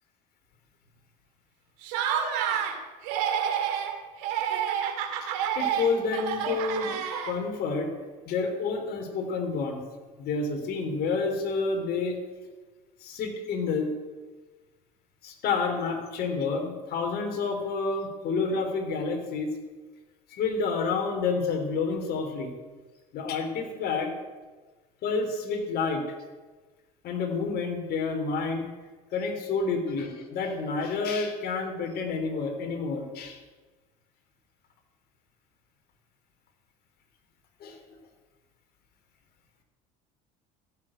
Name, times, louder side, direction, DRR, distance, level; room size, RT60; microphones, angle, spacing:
Laughter, 1.8-2.8 3.0-3.9 4.2-7.6, right 8 dB, 75° right, 2.2 m, -29 dB
voice 1, 5.6-7.9 8.3-9.8 10.2-12.2 13.0-13.9 15.2-19.5 20.3-22.5 23.1-24.1 25.0-26.0 27.0-28.7 29.1-33.4 37.6-37.8, left 4 dB, 55° left, 3 dB, 3.6 m, -29 dB
14.5 x 7.6 x 8.7 m, 1.3 s
hypercardioid pair, 80°, 19 cm